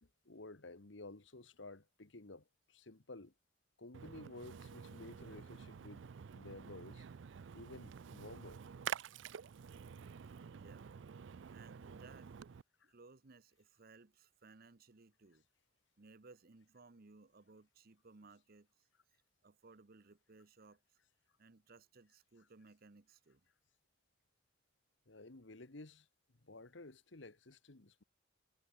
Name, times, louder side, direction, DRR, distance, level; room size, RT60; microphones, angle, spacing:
voice 1, 0.0-3.3 3.8-7.1 7.5-8.6 12.8-12.9 25.1-28.0, left 2 dB, 65° left, 1.5 m, -54 dB
Splash splatter, 3.9-12.6, right 7 dB, 65° right, 0.4 m, -49 dB
voice 2, 10.2-10.9 11.2-12.3 12.8-15.5 16.0-18.9 19.4-21.0 21.4-23.4, right 3 dB, 50° right, 0.9 m, -61 dB
head